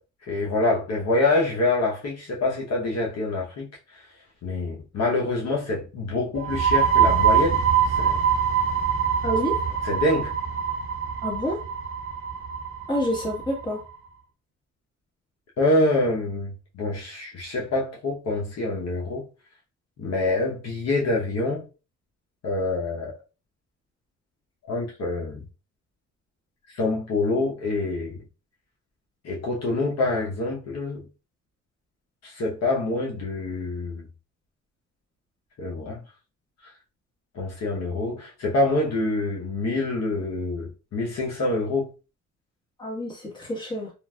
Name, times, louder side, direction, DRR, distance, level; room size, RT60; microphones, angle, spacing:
voice 1, 0.3-4.0 4.4-7.6 7.9-8.2 9.8-10.3 15.6-19.3 20.0-21.6 22.4-23.1 24.7-25.4 26.7-28.2 29.2-31.0 32.2-34.1 35.6-36.0 36.6-36.7 37.3-41.9, left 2 dB, 60° left, 0.9 m, -26 dB
sound 1, 6.3-13.8, right 8 dB, 45° right, 1.1 m, -24 dB
voice 2, 9.2-9.6 11.2-11.6 12.9-13.8 42.8-43.9, equal, 15° left, 1.4 m, -28 dB
3.0 x 2.5 x 2.3 m
cardioid pair, 90°, 30 cm